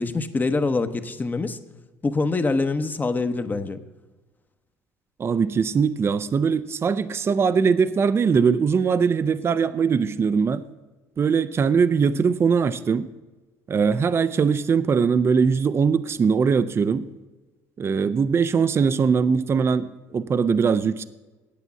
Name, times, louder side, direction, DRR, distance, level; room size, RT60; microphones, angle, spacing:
voice 1, 0.0-1.6 2.0-3.8, left 3 dB, 25° left, 10 dB, 0.9 m, -24 dB
voice 2, 5.2-10.6 11.2-13.1 13.7-17.0 17.8-21.0, right 6 dB, 35° right, 13 dB, 0.5 m, -21 dB
9.0 x 8.4 x 6.9 m, 1.2 s
supercardioid pair, 75°, 7 cm